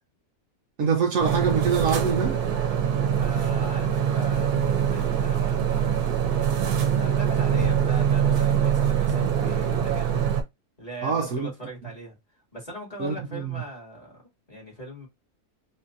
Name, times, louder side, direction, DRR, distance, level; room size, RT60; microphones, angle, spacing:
voice 1, 0.8-2.4 11.0-11.5 13.0-13.5, right 6 dB, 65° right, 0.9 m, -25 dB
sound 1, 1.2-10.4, right 8 dB, 85° right, 1.3 m, -23 dB
voice 2, 3.2-5.8 6.2-6.6 6.9-10.3 10.8-12.2 12.5-14.2 14.5-15.1, right 1 dB, 25° left, 1.9 m, -40 dB
4.0 x 2.8 x 2.5 m
omnidirectional pair, 1.6 m